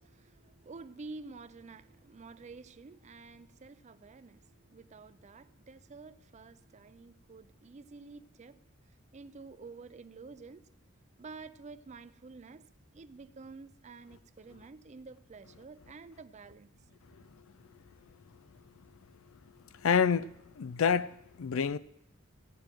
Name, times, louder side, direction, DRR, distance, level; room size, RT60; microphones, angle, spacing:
voice 1, 0.0-8.6 9.1-10.6 11.2-12.6 12.9-16.7, right 4 dB, 35° right, 0.5 m, -50 dB
voice 2, 19.8-21.8, left 6 dB, 75° left, 0.4 m, -28 dB
16.5 x 9.0 x 4.5 m
head